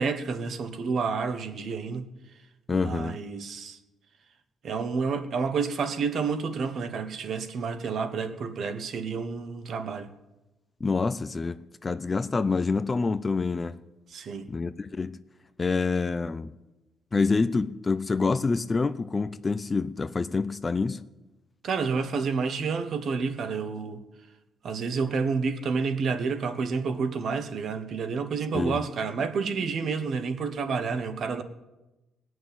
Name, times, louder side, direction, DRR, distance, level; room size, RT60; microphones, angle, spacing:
voice 1, 0.0-2.1 2.7-3.8 4.6-10.1 14.1-14.5 21.6-24.0 24.6-31.4, right 5 dB, 50° right, 1.2 m, -29 dB
voice 2, 2.7-3.2 10.8-13.8 14.5-15.2 15.6-16.5 17.1-21.0 28.5-28.8, left 4 dB, 20° left, 0.4 m, -27 dB
19.0 x 6.3 x 9.2 m
cardioid pair, 150°, 0 cm